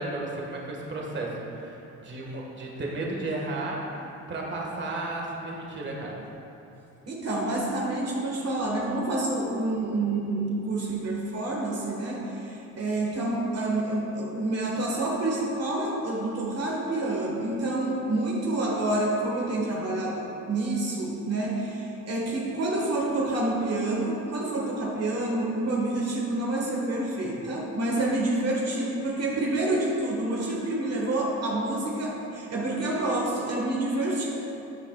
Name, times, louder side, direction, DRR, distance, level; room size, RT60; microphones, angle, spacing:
voice 1, 0.0-3.8 4.3-6.2, right 2 dB, 40° right, -2 dB, 1.7 m, -33 dB
voice 2, 7.1-34.2, right 2 dB, 55° right, -3 dB, 1.6 m, -28 dB
13.5 x 8.3 x 2.4 m, 2.9 s
cardioid pair, 90°, 30 cm